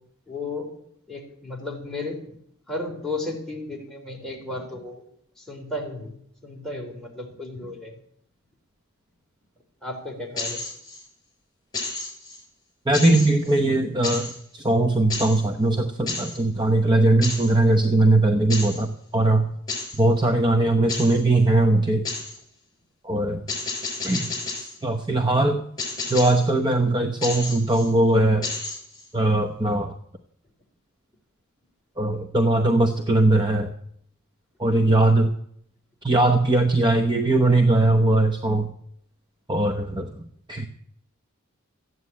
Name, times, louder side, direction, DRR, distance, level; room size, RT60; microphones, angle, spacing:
voice 1, 0.3-0.8 1.1-2.3 2.7-5.0 5.4-6.1 6.4-7.9 9.8-10.6, left 2 dB, ahead, -2 dB, 3.8 m, -34 dB
sound 1, 10.4-11.0 11.7-12.4 12.9-13.6 14.0-14.4 15.1-15.4 16.1-16.4 17.2-17.6 18.5-18.8 19.7-20.0 20.9-21.2 22.1-22.4 23.5-24.8 25.8-26.5 27.2-27.9 28.4-29.1, left 3 dB, 20° left, 6.1 m, -31 dB
voice 2, 12.9-19.4 20.0-22.0 23.0-23.4 24.0-24.3 24.6-25.7 26.1-28.5 29.1-29.9 32.0-33.7 34.6-35.3 36.0-38.7 39.5-40.2 40.5-40.7, right 2 dB, 20° right, 5 dB, 0.9 m, -20 dB
14.0 x 9.6 x 8.5 m, 0.68 s
head